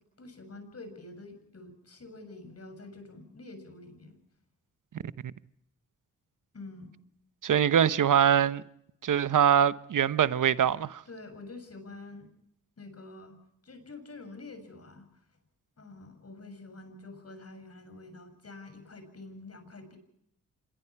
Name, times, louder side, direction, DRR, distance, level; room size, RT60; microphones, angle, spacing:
voice 1, 0.2-4.2 6.5-7.0 11.1-12.3 12.8-13.4 13.6-15.1 15.8-20.0, left 2 dB, 45° left, 7.2 m, -47 dB
voice 2, 7.4-8.6 9.0-11.0, right 9 dB, 60° right, 1.0 m, -23 dB
26.5 x 21.5 x 4.7 m
supercardioid pair, 50°, 34 cm